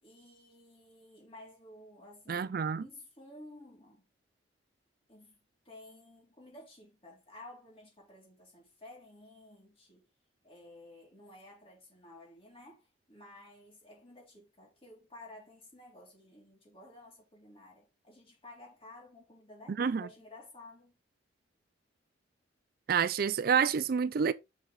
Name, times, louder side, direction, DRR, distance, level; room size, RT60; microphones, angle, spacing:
voice 1, 0.0-4.1 5.1-10.1 10.4-21.0, left 1 dB, 30° left, 3.6 m, -54 dB
voice 2, 2.3-2.8 19.8-20.1 22.9-24.3, right 6 dB, 50° right, 0.4 m, -28 dB
6.3 x 6.1 x 3.8 m
head